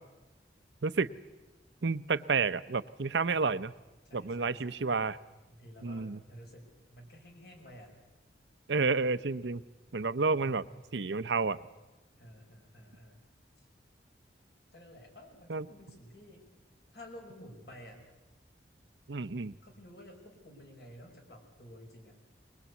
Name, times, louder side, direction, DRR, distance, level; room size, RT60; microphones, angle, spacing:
voice 1, 0.8-1.1 1.8-3.7 4.1-5.2 5.8-6.2 8.7-9.6 9.9-10.6 10.9-11.6 15.5-15.7 19.1-19.6, right 4 dB, 80° right, 14 dB, 0.7 m, -30 dB
voice 2, 4.1-4.9 5.5-7.9 10.3-10.9 12.2-13.3 13.6-13.7 14.7-16.4 16.9-18.1 19.6-22.4, equal, 60° left, 2 dB, 5.5 m, -52 dB
22.0 x 21.5 x 8.3 m, 1.1 s
head